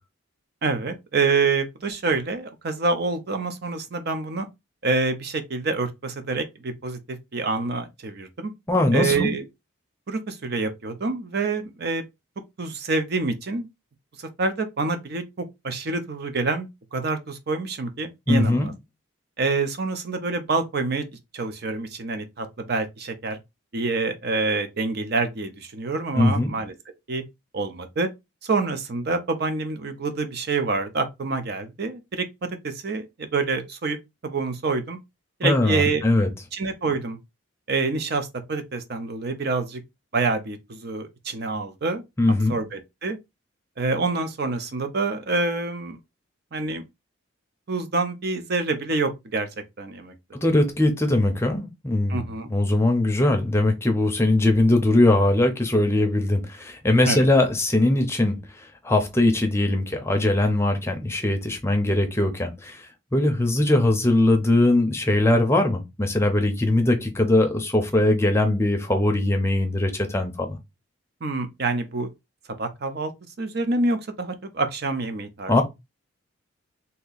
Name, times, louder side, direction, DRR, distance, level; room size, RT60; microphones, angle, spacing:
voice 1, 0.6-4.5 4.8-8.5 8.9-9.4 10.1-12.0 12.6-13.7 14.2-18.7 19.4-21.0 21.3-23.4 23.7-26.7 27.1-27.2 27.5-28.1 28.4-32.3 32.6-34.0 34.2-35.0 35.4-36.0 36.5-37.2 37.7-39.8 40.1-42.0 42.5-43.2 43.8-46.0 46.5-46.8 47.7-49.5 49.8-50.4 52.1-52.5 57.1-57.3 71.2-72.1 72.6-73.1 73.4-75.6, right 3 dB, 50° right, 0.5 m, -27 dB
voice 2, 8.7-9.3 18.3-18.7 26.1-26.5 35.4-36.3 42.2-42.6 50.3-58.4 58.8-70.6 75.5-75.6, left 1 dB, 10° left, 0.6 m, -21 dB
2.8 x 2.7 x 3.9 m
head